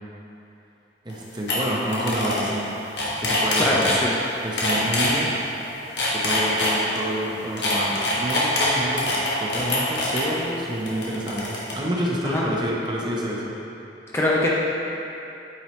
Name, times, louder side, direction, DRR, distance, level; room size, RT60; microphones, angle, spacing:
voice 1, 1.0-2.8 3.2-3.9 4.4-5.4 6.1-13.6, equal, 25° right, -4 dB, 0.8 m, -28 dB
sound 1, 1.1-1.2 1.5-1.6 1.9-2.5 2.8-4.0 4.6-5.1 5.8-7.0 7.6-10.2 10.9-11.7, left 2 dB, 90° left, 1.4 m, -24 dB
voice 2, 3.6-4.1 12.2-12.4 14.1-14.5, left 1 dB, 15° left, -5 dB, 0.5 m, -22 dB
8.8 x 4.6 x 3.1 m, 2.9 s
head